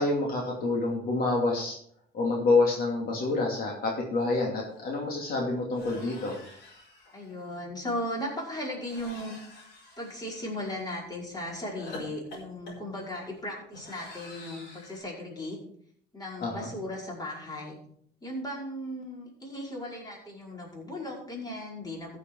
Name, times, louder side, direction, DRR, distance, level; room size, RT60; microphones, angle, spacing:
voice 1, 0.0-1.8 2.1-6.4 16.4-16.7, left 3 dB, 60° left, -1 dB, 2.8 m, -27 dB
sound 1, 4.3-4.4 4.7-4.9 5.7-7.4 8.8-11.0 11.7-15.0, left 2 dB, 80° left, 4.7 m, -48 dB
voice 2, 7.1-9.4 10.0-15.6 16.1-17.8 18.2-22.2, left 1 dB, 25° left, -3 dB, 5.1 m, -37 dB
14.5 x 6.9 x 4.7 m, 0.64 s
cardioid pair, 110°, 17 cm